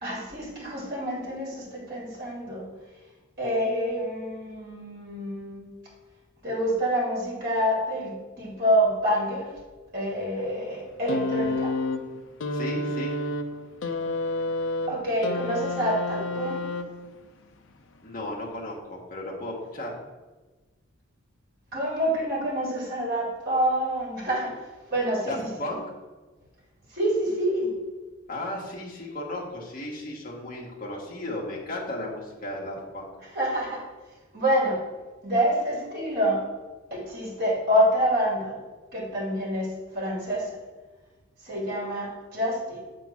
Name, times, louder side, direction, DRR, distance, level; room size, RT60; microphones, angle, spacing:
voice 1, 0.0-2.7 3.4-5.7 6.4-9.5 9.9-11.8 14.9-16.6 21.7-24.6 24.9-25.5 26.9-27.7 33.3-33.9 34.3-34.8 35.2-36.4 36.9-38.6 38.9-40.6 41.4-42.8, equal, 50° right, -4 dB, 2.3 m, -27 dB
sound 1, 11.1-17.3 18.3-18.4, left 2 dB, 65° left, 0.5 m, -30 dB
voice 2, 12.5-13.2 18.0-19.9 25.3-25.8 28.3-33.1, left 1 dB, 40° left, -2 dB, 1.6 m, -35 dB
7.0 x 3.8 x 6.0 m, 1.3 s
head